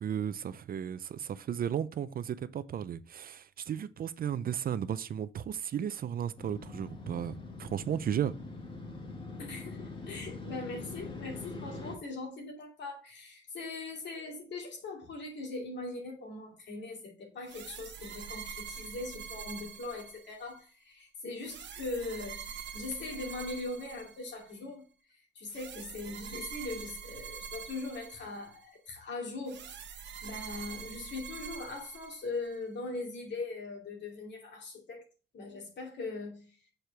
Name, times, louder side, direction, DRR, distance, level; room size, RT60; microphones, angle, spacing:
voice 1, 0.0-7.3 7.6-8.3, right 9 dB, 45° right, 0.5 m, -34 dB
Motorcycle, 6.4-12.0, left 3 dB, 25° left, 1.7 m, -43 dB
voice 2, 9.4-24.8 25.3-35.0 35.3-36.5, left 3 dB, 65° left, 2.5 m, -40 dB
sound 1, 17.4-20.6 21.4-24.5 25.5-28.6 29.5-32.6, right 7 dB, 65° right, 0.9 m, -45 dB
6.4 x 4.7 x 3.3 m
cardioid pair, 90°, 20 cm